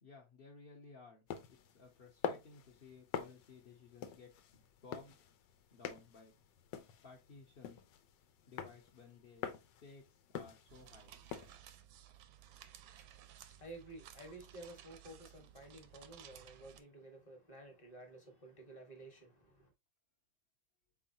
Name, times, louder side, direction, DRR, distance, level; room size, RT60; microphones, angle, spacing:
voice 1, 0.0-5.2 5.7-6.3 7.0-7.8 8.5-9.5 9.8-10.0 10.3-11.2, left 4 dB, 45° left, 0.8 m, -57 dB
sound 1, 1.3-11.6, left 8 dB, 70° left, 1.3 m, -46 dB
sound 2, 10.7-16.8, right 10 dB, 85° right, 1.4 m, -57 dB
voice 2, 13.6-19.6, right 2 dB, 25° left, 1.3 m, -53 dB
4.7 x 3.8 x 2.8 m
omnidirectional pair, 2.1 m